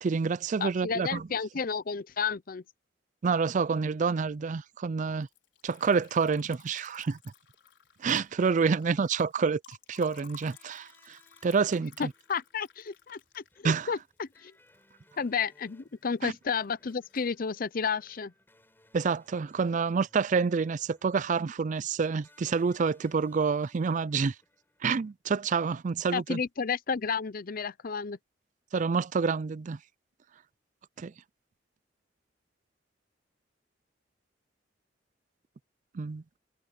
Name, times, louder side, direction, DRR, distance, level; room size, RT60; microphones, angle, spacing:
voice 1, 0.0-1.2 3.2-5.3 5.6-7.2 8.0-12.1 13.6-13.9 16.2-16.3 18.9-24.3 24.8-26.4 28.7-29.8 31.0-31.1 35.9-36.2, right 5 dB, 45° right, 0.4 m, -28 dB
voice 2, 0.6-2.6 12.0-14.5 15.2-18.3 26.1-28.2, left 6 dB, 50° left, 0.6 m, -32 dB
Liquid, 5.2-15.4 15.7-16.4 16.6-17.4, left 7 dB, 80° left, 5.4 m, -56 dB
sound 1, 9.9-25.1, left 1 dB, 10° left, 7.1 m, -65 dB
head